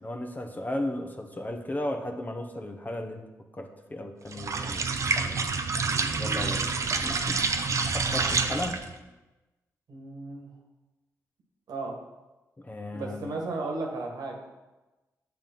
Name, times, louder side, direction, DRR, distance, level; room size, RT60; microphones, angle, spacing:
voice 1, 0.0-3.2 3.5-5.4 6.2-7.4 7.9-8.8 12.6-13.3, left 1 dB, 25° left, 4 dB, 0.9 m, -35 dB
sound 1, 4.3-8.9, right 4 dB, 50° right, 0.6 m, -28 dB
voice 2, 9.9-10.5 11.7-11.9 12.9-14.4, right 3 dB, 75° right, 1 dB, 1.4 m, -35 dB
7.5 x 3.6 x 5.6 m, 1.1 s
cardioid pair, 60°, 7 cm